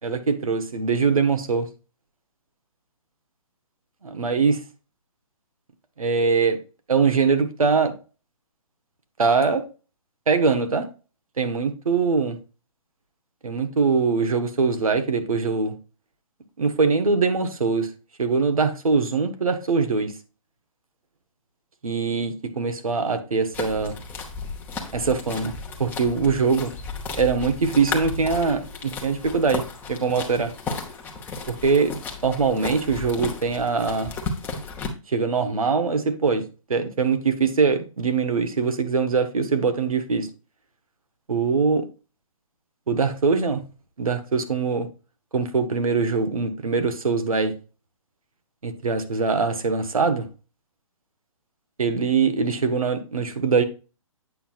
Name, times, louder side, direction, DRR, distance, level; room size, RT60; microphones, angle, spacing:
voice 1, 0.0-1.7 4.0-4.6 6.0-6.6 6.9-7.9 9.2-9.6 10.3-10.8 11.4-12.4 13.4-15.7 16.6-17.9 18.2-20.1 21.8-23.9 24.9-25.5 25.8-26.7 27.2-29.6 29.9-30.5 31.5-31.9 32.2-34.1 35.1-36.4 36.7-40.3 41.3-41.8 42.9-43.6 44.0-44.9 45.3-47.5 48.6-50.3 51.8-53.6, right 4 dB, 90° right, 8 dB, 1.2 m, -22 dB
sound 1, 23.5-34.9, left 4 dB, 10° left, 0.9 m, -34 dB
8.3 x 5.6 x 2.4 m, 0.34 s
hypercardioid pair, 145°, 18 cm